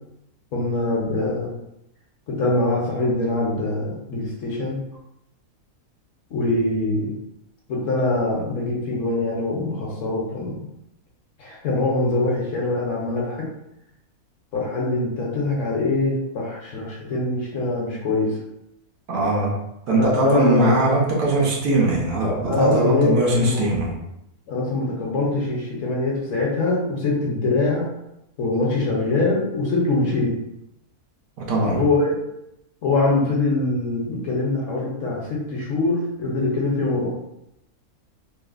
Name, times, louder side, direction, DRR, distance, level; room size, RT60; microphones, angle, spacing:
voice 1, 0.5-1.5 2.3-4.8 6.3-7.1 7.7-10.7 11.4-13.5 14.5-18.4 19.9-20.9 22.5-23.7 24.5-27.9 28.4-30.4 31.7-32.1 32.8-37.1, left 2 dB, 65° left, -3 dB, 0.9 m, -23 dB
voice 2, 19.1-19.5 19.9-24.0 31.4-31.8, right 2 dB, 70° right, -2 dB, 1.0 m, -20 dB
3.1 x 2.0 x 2.4 m, 0.83 s
omnidirectional pair, 1.6 m